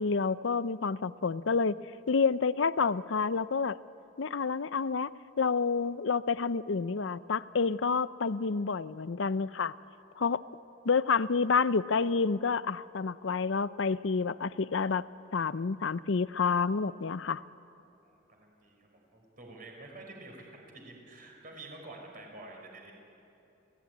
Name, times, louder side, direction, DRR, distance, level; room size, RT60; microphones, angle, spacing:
voice 1, 0.0-1.8 2.1-3.8 4.2-9.7 10.2-10.4 10.8-15.1 15.3-17.4, left 5 dB, 70° left, 16 dB, 0.6 m, -29 dB
voice 2, 18.0-22.9, right 2 dB, 45° right, 1 dB, 5.1 m, -49 dB
30.0 x 16.5 x 9.5 m, 2.9 s
head